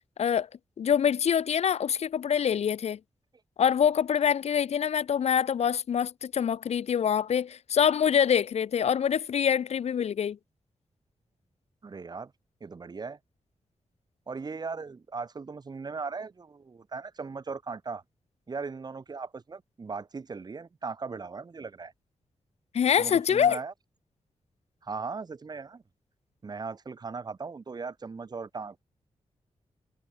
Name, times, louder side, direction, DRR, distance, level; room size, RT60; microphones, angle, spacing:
voice 1, 0.8-3.0 3.6-10.4 22.7-23.6, left 8 dB, 80° left, 2.2 m, -25 dB
voice 2, 11.8-12.3 12.6-13.2 14.3-18.0 18.5-21.9 23.0-23.7 24.8-25.8 26.4-28.8, right 4 dB, 40° right, 7.2 m, -38 dB
wide cardioid pair, 135°, 11 cm